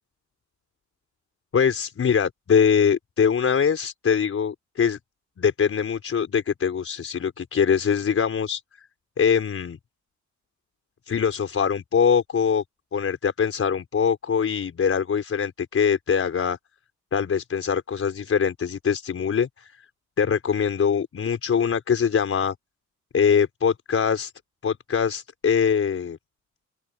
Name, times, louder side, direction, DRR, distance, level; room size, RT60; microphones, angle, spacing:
voice 1, 1.5-5.0 5.4-8.6 9.2-9.8 11.1-12.6 12.9-16.6 17.1-19.8 20.2-22.5 23.1-24.3 24.6-26.2, left 7 dB, 50° left, 5.1 m, -23 dB
open air
cardioid pair, 90°, 30 cm